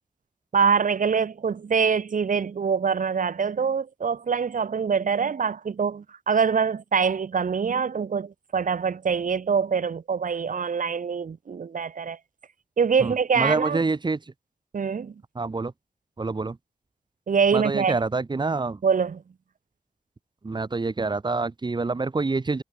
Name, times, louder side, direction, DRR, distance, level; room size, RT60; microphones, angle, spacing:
voice 1, 0.5-12.2 12.8-13.8 14.7-15.1 17.3-17.9 18.8-19.2, right 6 dB, 70° right, 4.7 m, -24 dB
voice 2, 13.0-14.2 15.4-15.7 16.2-16.6 17.5-18.8 20.4-22.6, right 3 dB, 30° right, 4.0 m, -26 dB
wide cardioid pair, 145°, 14 cm